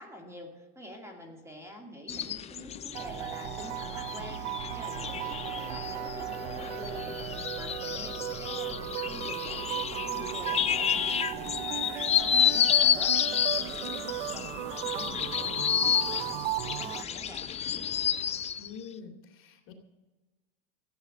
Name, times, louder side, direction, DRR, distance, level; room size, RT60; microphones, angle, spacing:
voice 1, 0.0-5.5 5.7-17.5, equal, 10° right, 2 dB, 2.3 m, -47 dB
sound 1, 2.1-18.7, left 8 dB, 20° left, 0.5 m, -30 dB
sound 2, 2.9-17.0, right 17 dB, 80° right, 0.6 m, -36 dB
voice 2, 18.6-19.7, left 6 dB, 40° left, 3 dB, 2.4 m, -46 dB
15.0 x 8.5 x 7.4 m, 1.2 s
supercardioid pair, 125°, 30 cm